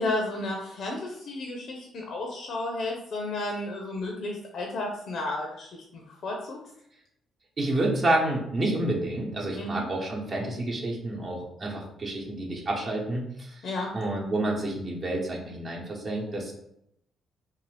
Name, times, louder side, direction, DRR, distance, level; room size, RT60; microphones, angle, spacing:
voice 1, 0.0-6.6 9.6-9.8 13.6-13.9, left 2 dB, 65° left, 0 dB, 0.5 m, -32 dB
voice 2, 7.6-13.6 13.9-16.5, right 1 dB, 45° right, -2 dB, 0.9 m, -29 dB
2.6 x 2.4 x 3.2 m, 0.76 s
cardioid pair, 90°, 0 cm